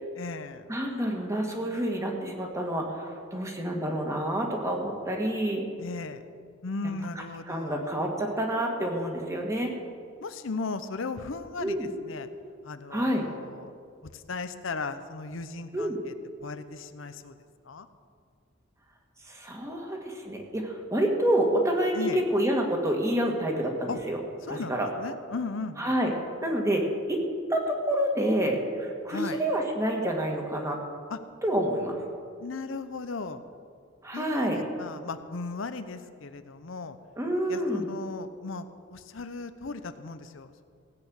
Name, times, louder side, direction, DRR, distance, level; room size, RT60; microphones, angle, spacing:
voice 1, 0.1-0.7 5.8-6.2 6.6-7.8 10.2-12.3 12.6-13.7 14.0-16.1 16.4-17.4 17.6-17.9 21.9-22.2 23.9-24.0 24.4-26.0 29.1-29.4 31.1-31.2 32.4-33.4 34.1-37.0 37.5-40.6, left 3 dB, 85° left, 10 dB, 0.7 m, -37 dB
voice 2, 0.7-2.9 3.3-5.7 7.5-9.7 11.6-11.9 12.9-13.2 15.7-16.0 19.3-24.2 24.5-24.9 25.8-26.1 26.4-26.8 27.1-27.2 27.5-30.8 31.4-32.0 34.0-34.6 37.2-37.9, right 1 dB, 15° right, 1 dB, 1.9 m, -28 dB
16.5 x 8.7 x 6.4 m, 2.2 s
head